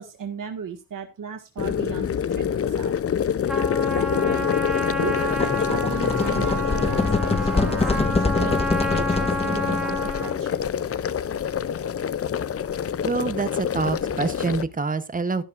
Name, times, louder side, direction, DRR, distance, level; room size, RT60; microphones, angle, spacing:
voice 1, 0.0-2.5 2.8-2.9 3.9-4.5 5.0-10.6, right 6 dB, 75° right, 4 dB, 1.7 m, -36 dB
sound 1, 1.6-14.6, left 8 dB, 45° left, 0.5 m, -27 dB
Trumpet, 3.5-10.4, left 1 dB, ahead, 2.4 m, -29 dB
sound 2, 5.2-10.1, left 3 dB, 20° left, 0.8 m, -25 dB
voice 2, 13.0-15.4, right 4 dB, 25° right, 12 dB, 0.9 m, -26 dB
12.5 x 12.0 x 2.5 m, 0.25 s
wide cardioid pair, 165°, 33 cm